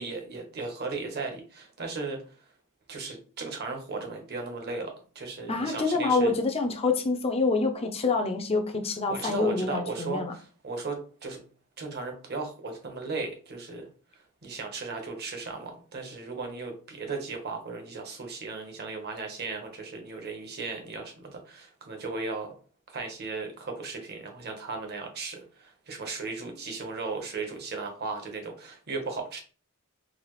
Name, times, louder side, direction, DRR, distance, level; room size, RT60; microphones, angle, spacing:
voice 1, 0.0-2.2 2.9-6.3 9.1-10.2 10.6-11.4 11.8-13.9 14.4-22.5 22.9-29.4, right 3 dB, 50° right, 3 dB, 1.0 m, -36 dB
voice 2, 5.5-10.3, left 3 dB, 25° left, 5 dB, 0.5 m, -26 dB
4.0 x 2.3 x 3.1 m, 0.39 s
head